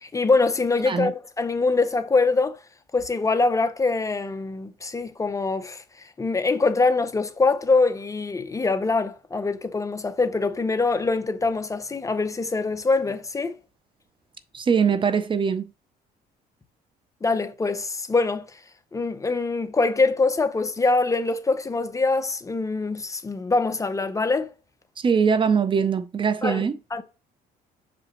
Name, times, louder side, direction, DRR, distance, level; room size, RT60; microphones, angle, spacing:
voice 1, 0.0-2.6 2.9-5.8 6.2-13.6 17.2-18.5 18.9-24.5 26.4-26.6 26.9-27.0, left 3 dB, 20° left, 0.6 m, -24 dB
voice 2, 14.5-15.6 25.0-26.8, right 6 dB, 30° right, 0.5 m, -22 dB
6.6 x 5.1 x 2.9 m
cardioid pair, 110°, 17 cm